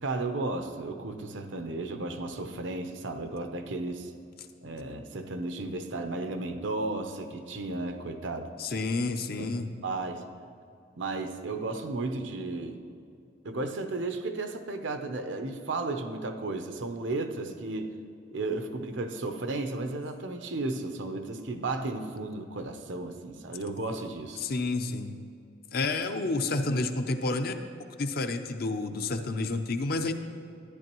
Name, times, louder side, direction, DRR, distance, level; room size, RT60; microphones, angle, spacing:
voice 1, 0.0-4.1 4.6-8.5 9.4-9.5 9.8-10.2 11.0-12.8 13.4-17.9 18.3-24.4, right 2 dB, 85° right, 7 dB, 0.8 m, -34 dB
voice 2, 8.6-9.7 24.4-25.2 25.7-27.5 28.0-30.1, left 3 dB, 55° left, 7 dB, 0.6 m, -29 dB
13.5 x 10.0 x 3.0 m, 2.5 s
head